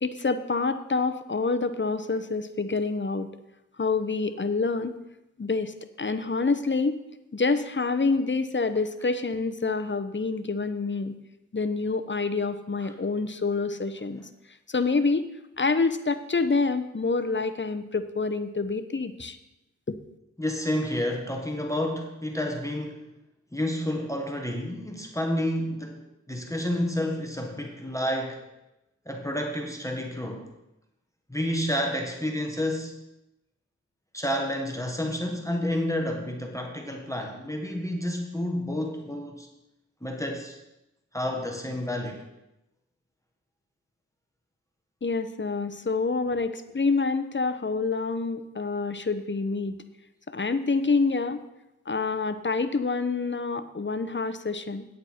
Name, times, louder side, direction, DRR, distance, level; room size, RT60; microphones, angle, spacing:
voice 1, 0.0-3.3 3.8-5.0 5.4-7.0 7.3-11.2 11.5-14.3 14.7-15.2 15.6-19.4 19.9-20.0 45.0-49.7 50.3-51.4 51.9-54.9, left 4 dB, 40° left, 11 dB, 0.8 m, -27 dB
voice 2, 20.4-23.1 23.5-26.0 26.3-28.4 29.0-30.5 31.3-32.9 34.1-39.5 40.0-40.6 41.1-42.2, left 1 dB, 10° left, 2 dB, 1.4 m, -30 dB
9.3 x 8.7 x 4.4 m, 0.91 s
cardioid pair, 45°, 31 cm